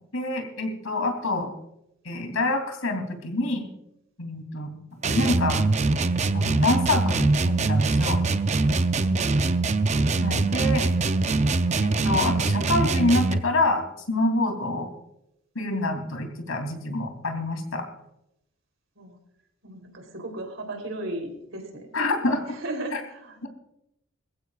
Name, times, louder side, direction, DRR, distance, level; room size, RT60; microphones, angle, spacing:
voice 1, 0.1-1.5 2.0-3.6 4.2-4.8 5.0-5.7 6.3-8.2 10.2-10.9 11.8-14.9 15.5-17.8 21.9-22.4 22.9-23.0 23.4-23.5, left 2 dB, 85° left, 4 dB, 3.0 m, -26 dB
sound 1, 5.0-13.5, right 3 dB, 35° right, 0.5 m, -23 dB
voice 2, 19.6-21.9 22.4-23.5, right 1 dB, 70° right, 3 dB, 3.4 m, -36 dB
22.0 x 15.0 x 2.4 m, 0.82 s
head